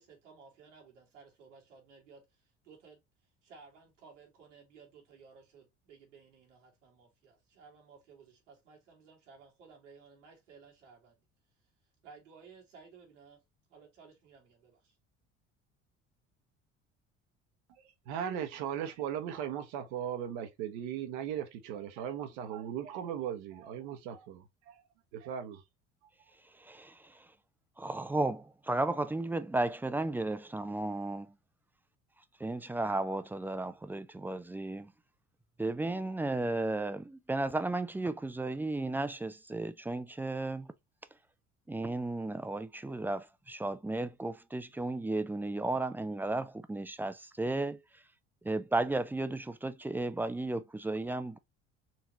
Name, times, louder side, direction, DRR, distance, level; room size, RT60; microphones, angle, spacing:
voice 1, 0.0-3.0 3.4-11.2 12.0-13.4 13.7-15.0, right 5 dB, 85° right, 1.9 m, -57 dB
voice 2, 17.8-24.8 25.1-25.6, right 9 dB, 70° right, 1.0 m, -38 dB
voice 3, 26.6-27.3 27.8-31.3 32.4-34.9 35.6-40.7 41.7-47.8 48.4-51.4, right 2 dB, 5° right, 0.3 m, -34 dB
4.4 x 2.9 x 2.7 m
hypercardioid pair, 65°, 36 cm